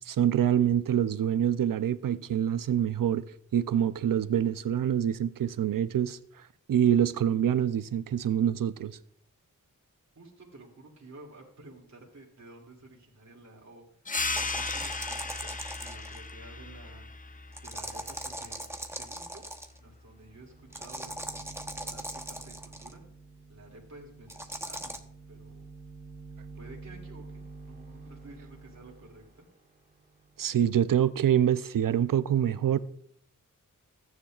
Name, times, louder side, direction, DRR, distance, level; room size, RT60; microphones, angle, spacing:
voice 1, 0.0-3.2 3.5-9.0 30.4-32.8, right 10 dB, 80° right, 0.6 m, -26 dB
voice 2, 10.1-14.1 14.4-17.1 17.6-18.6 18.9-19.4 19.8-23.0 23.5-25.0 25.3-25.7 26.5-29.5, right 2 dB, 55° right, 2.5 m, -52 dB
sound 1, 14.1-19.2, left 4 dB, 25° left, 0.5 m, -36 dB
sound 2, 14.1-16.3 17.6-19.8 20.7-22.9 24.3-25.0, right 1 dB, 10° right, 0.9 m, -39 dB
sound 3, 19.7-19.8 20.1-31.3, right 3 dB, 30° right, 1.9 m, -49 dB
14.5 x 9.7 x 2.4 m
wide cardioid pair, 65°, 33 cm